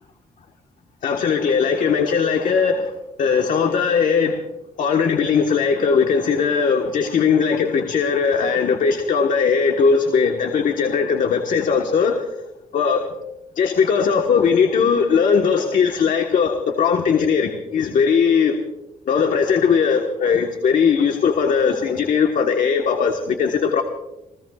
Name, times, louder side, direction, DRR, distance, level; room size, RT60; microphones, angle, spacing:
voice 1, 1.0-2.9 3.2-4.4 4.8-12.2 12.7-13.1 13.5-18.5 19.1-23.8, left 6 dB, 55° left, 3 dB, 1.5 m, -19 dB
28.5 x 17.0 x 2.5 m, 0.95 s
cardioid pair, 140°, 15 cm